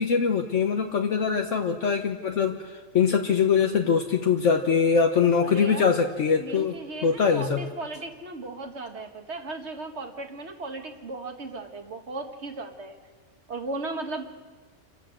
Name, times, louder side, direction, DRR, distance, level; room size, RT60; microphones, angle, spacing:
voice 1, 0.0-6.7 7.0-7.6, left 6 dB, 70° left, 4 dB, 1.4 m, -23 dB
voice 2, 5.4-6.0 6.4-13.0 13.5-14.3, right 3 dB, 60° right, 5 dB, 1.9 m, -36 dB
28.0 x 12.5 x 7.7 m, 1.4 s
omnidirectional pair, 1.3 m